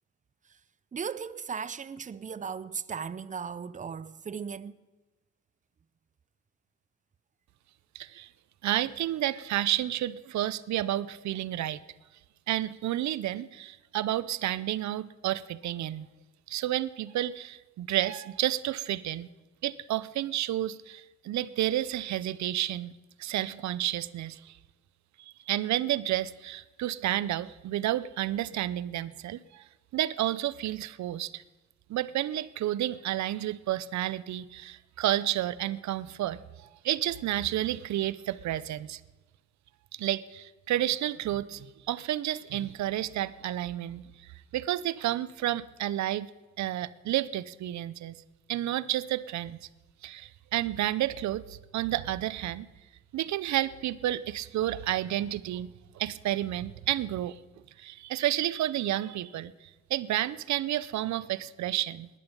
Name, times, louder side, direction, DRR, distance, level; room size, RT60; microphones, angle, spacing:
voice 1, 0.9-4.8, right 6 dB, 25° right, 0.6 m, -37 dB
voice 2, 7.9-8.3 8.6-11.8 12.5-16.1 16.5-19.3 19.6-24.6 25.2-29.6 29.9-31.4 31.9-39.0 39.9-44.0 44.5-46.3 46.6-48.2 48.5-49.7 50.0-52.7 53.1-57.4 57.8-59.5 59.9-62.1, right 13 dB, 65° right, 0.6 m, -31 dB
18.5 x 11.0 x 5.3 m
cardioid pair, 90°, 30 cm